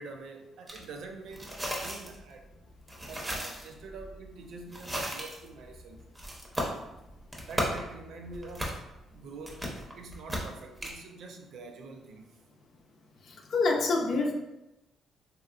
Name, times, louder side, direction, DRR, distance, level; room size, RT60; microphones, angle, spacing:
voice 1, 0.0-1.6 1.8-2.5 3.1-6.1 7.5-12.4, right 3 dB, 70° right, 4 dB, 0.4 m, -46 dB
sound 1, 0.7-0.8 1.3-10.9, equal, 15° right, 0.7 m, -36 dB
voice 2, 13.2-14.3, left 3 dB, 60° left, 1 dB, 0.6 m, -27 dB
3.1 x 2.8 x 2.4 m, 0.95 s
cardioid pair, 90°, 0 cm